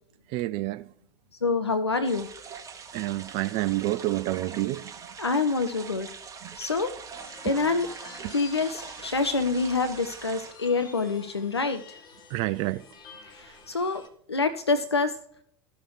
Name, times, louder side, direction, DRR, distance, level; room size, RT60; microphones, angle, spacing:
voice 1, 0.3-0.9 2.9-4.9 8.2-8.3 12.3-12.8, right 16 dB, 40° right, 0.4 m, -28 dB
voice 2, 1.4-2.3 5.2-6.1 6.6-6.9 7.4-7.9 8.3-12.0 13.3-14.0 14.3-15.2, left 4 dB, 85° left, 0.5 m, -26 dB
sound 1, 2.0-10.5, right 6 dB, 25° right, 1.1 m, -43 dB
sound 2, 7.1-14.1, left 5 dB, 30° left, 1.5 m, -49 dB
14.0 x 6.4 x 3.1 m
figure-of-eight pair, 80°, 13 cm